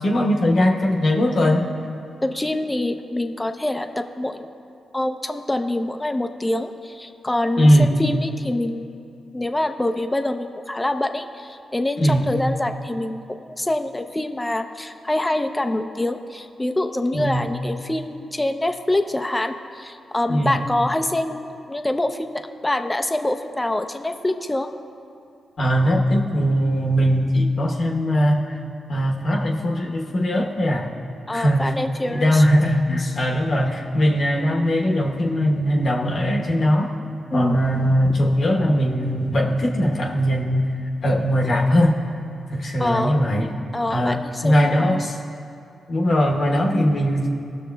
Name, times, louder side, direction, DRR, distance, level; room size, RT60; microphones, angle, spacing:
voice 1, 0.0-1.6 7.6-8.0 12.0-12.3 17.1-17.5 20.3-20.6 25.6-28.6 28.9-30.9 31.3-31.7 32.1-36.9 37.3-40.7 41.0-42.0 42.5-43.5 43.9-45.2 45.9-47.3, equal, 60° left, -1 dB, 1.0 m, -20 dB
voice 2, 2.2-4.5 4.9-8.9 9.3-24.7 31.3-32.4 32.9-33.0 37.3-37.9 42.8-43.2 43.7-45.0, left 1 dB, 20° left, 7 dB, 0.6 m, -25 dB
18.5 x 6.3 x 2.3 m, 2.5 s
supercardioid pair, 45°, 0 cm